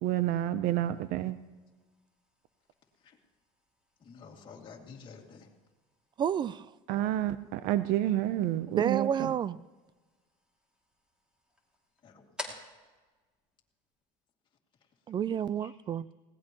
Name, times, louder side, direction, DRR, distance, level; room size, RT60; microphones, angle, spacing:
voice 1, 0.0-1.4 6.9-9.3, right 13 dB, 60° right, 0.6 m, -29 dB
sound 1, 0.7-14.3, left 1 dB, 5° right, 2.5 m, -53 dB
voice 2, 4.0-5.5 12.0-12.6 14.8-14.9 15.6-15.8, left 5 dB, 30° left, 2.4 m, -51 dB
voice 3, 6.2-6.7 8.7-9.6 15.1-16.1, right 9 dB, 30° right, 0.3 m, -30 dB
20.5 x 17.0 x 3.0 m
supercardioid pair, 115°, 16 cm